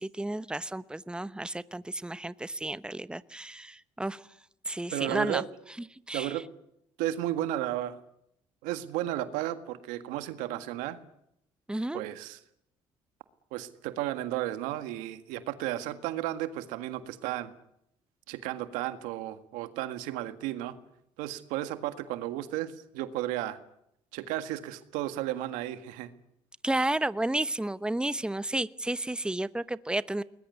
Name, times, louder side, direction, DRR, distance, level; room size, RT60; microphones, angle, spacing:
voice 1, 0.0-4.2 4.7-5.4 6.1-6.4 11.7-12.0 26.6-30.2, right 1 dB, 5° right, 15 dB, 1.0 m, -32 dB
voice 2, 4.9-5.5 6.1-6.4 7.0-8.0 8.6-11.0 11.9-12.4 13.5-17.5 18.3-20.7 21.2-23.6 24.1-26.1, right 14 dB, 85° right, 11 dB, 1.8 m, -33 dB
21.0 x 20.5 x 9.7 m, 0.77 s
supercardioid pair, 70°, 13 cm